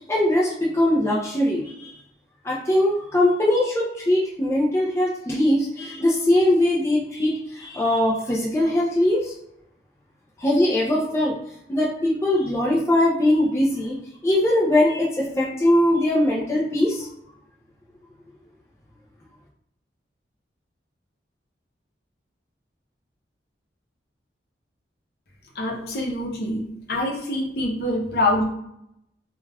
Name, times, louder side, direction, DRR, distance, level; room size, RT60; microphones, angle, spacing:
voice 1, 0.1-1.9 2.4-9.3 10.4-11.4 11.7-17.1, left 1 dB, 15° left, -5 dB, 0.4 m, -21 dB
voice 2, 25.6-26.6 26.9-28.4, left 1 dB, 60° left, -2 dB, 0.7 m, -25 dB
2.3 x 2.2 x 3.2 m, 0.78 s
head